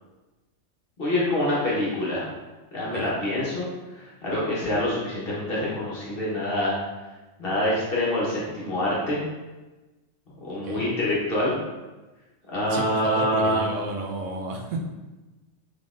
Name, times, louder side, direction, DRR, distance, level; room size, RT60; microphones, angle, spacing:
voice 1, 1.0-2.2 2.7-3.7 3.9-6.7 7.4-9.2 10.4-11.6 12.5-13.6, left 1 dB, 45° left, -6 dB, 1.1 m, -26 dB
voice 2, 12.7-14.8, right 2 dB, 90° right, 0 dB, 1.1 m, -32 dB
3.8 x 3.6 x 2.4 m, 1.1 s
omnidirectional pair, 1.4 m